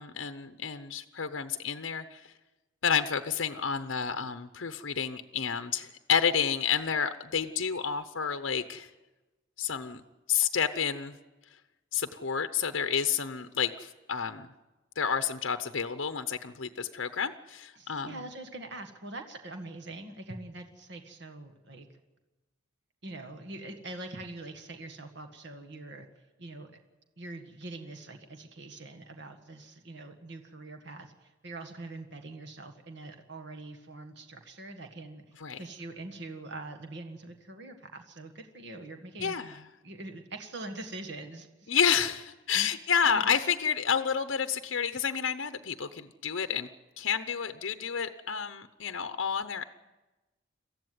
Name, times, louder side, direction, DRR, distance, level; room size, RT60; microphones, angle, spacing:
voice 1, 0.0-2.3 2.8-8.9 9.6-10.0 10.3-11.2 11.9-14.5 15.0-18.2 35.4-35.6 39.2-39.6 41.7-46.7 47.0-49.6, left 7 dB, 65° left, 9 dB, 0.8 m, -30 dB
voice 2, 17.7-21.9 23.0-26.1 26.4-26.7 27.2-35.2 35.6-41.7 42.5-42.7 43.0-43.3, right 2 dB, 55° right, 6 dB, 1.8 m, -43 dB
23.5 x 14.5 x 9.4 m, 1.1 s
head